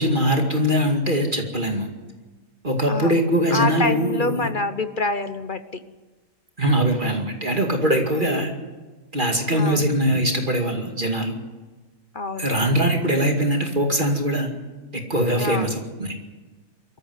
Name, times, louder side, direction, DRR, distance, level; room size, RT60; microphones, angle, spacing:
voice 1, 0.0-1.9 2.6-4.5 6.6-8.5 9.1-11.3 12.4-14.5 14.9-16.1, equal, 30° right, 3 dB, 2.4 m, -22 dB
voice 2, 2.9-3.2 3.5-5.8 8.1-8.5 9.5-9.9 12.1-12.8 15.3-15.8, left 3 dB, 40° left, 10 dB, 0.8 m, -27 dB
23.0 x 14.5 x 9.6 m, 1.3 s
omnidirectional pair, 1.8 m